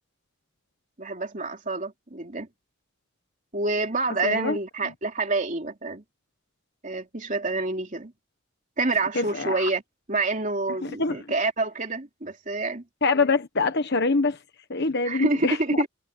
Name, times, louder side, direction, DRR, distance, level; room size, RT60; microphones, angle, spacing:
voice 1, 1.0-2.5 3.5-6.0 6.8-8.1 8.8-9.8 10.1-12.8 15.0-15.9, right 3 dB, 40° right, 3.0 m, -27 dB
voice 2, 4.2-4.6 9.1-9.7 10.8-11.2 13.0-14.4 14.7-15.8, left 3 dB, 55° left, 1.3 m, -24 dB
head